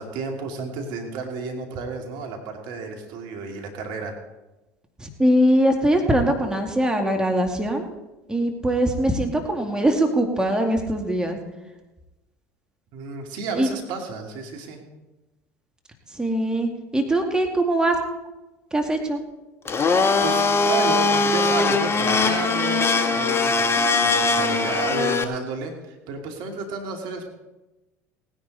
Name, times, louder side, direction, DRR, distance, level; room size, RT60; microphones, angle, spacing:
voice 1, 0.0-4.1 12.9-14.8 19.7-19.9 20.2-27.3, right 4 dB, 60° right, 3 dB, 2.4 m, -32 dB
voice 2, 5.0-7.9 8.3-11.4 13.6-13.7 16.1-18.0 18.7-19.2, right 1 dB, 10° right, 3 dB, 2.2 m, -22 dB
Domestic sounds home sounds, 19.7-25.2, left 4 dB, 30° left, 1.3 m, -21 dB
19.0 x 10.0 x 4.1 m, 1.1 s
hypercardioid pair, 70°, 8 cm